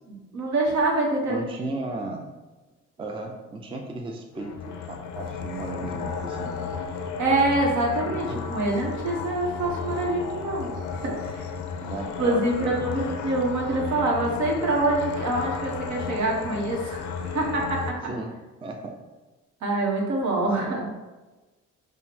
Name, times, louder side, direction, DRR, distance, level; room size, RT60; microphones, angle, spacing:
voice 1, 0.1-1.4 7.2-10.7 11.0-11.5 12.2-18.0 19.6-20.9, right 2 dB, 70° right, -1 dB, 1.0 m, -25 dB
voice 2, 1.3-2.3 3.0-6.6 7.9-8.2 11.8-12.9 18.1-18.3 18.6-19.0 20.7-20.8, right 2 dB, 20° right, 2 dB, 0.4 m, -35 dB
sound 1, 4.3-17.9, left 6 dB, 75° left, 0.5 m, -33 dB
3.6 x 2.0 x 4.3 m, 1.2 s
cardioid pair, 90°, 30 cm